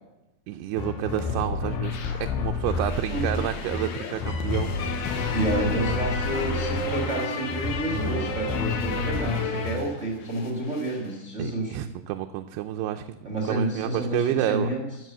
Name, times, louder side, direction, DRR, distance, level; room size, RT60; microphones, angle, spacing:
voice 1, 0.5-5.2 11.4-14.7, right 13 dB, 85° right, 6 dB, 2.7 m, -30 dB
sound 1, 0.8-9.9 10.2-11.1, left 5 dB, 85° left, 3.3 m, -32 dB
sound 2, 2.5-3.9 4.2-7.1 7.6-9.3, right 3 dB, 15° right, 0.9 m, -41 dB
sound 3, 2.6-9.8, left 3 dB, 60° left, 2.4 m, -31 dB
voice 2, 3.1-3.4 5.3-11.8 13.2-14.8, right 1 dB, 35° right, 0 dB, 1.2 m, -29 dB
15.0 x 6.1 x 7.4 m, 0.98 s
omnidirectional pair, 4.6 m